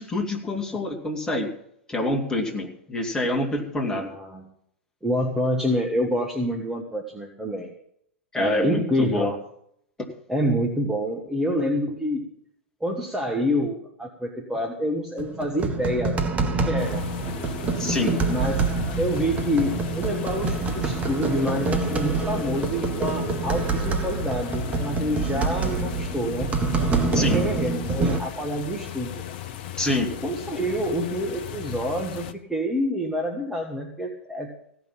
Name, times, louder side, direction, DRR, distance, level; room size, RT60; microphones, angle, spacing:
voice 1, 0.0-1.5 1.9-4.1 8.3-9.3 10.0-10.1 17.8-18.2 27.1-27.4 29.8-30.1, left 2 dB, 10° left, 0 dB, 2.5 m, -26 dB
voice 2, 3.9-4.5 5.0-7.7 8.3-9.4 10.3-12.3 12.8-17.1 18.3-18.7 19.0-26.6 27.1-29.2 30.2-34.5, equal, 5° right, 0 dB, 1.5 m, -27 dB
sound 1, 15.2-28.2, right 3 dB, 20° right, 1.4 m, -26 dB
sound 2, 16.8-32.3, left 11 dB, 50° left, 0.9 m, -37 dB
16.0 x 6.0 x 8.6 m, 0.71 s
figure-of-eight pair, 95°, 7 cm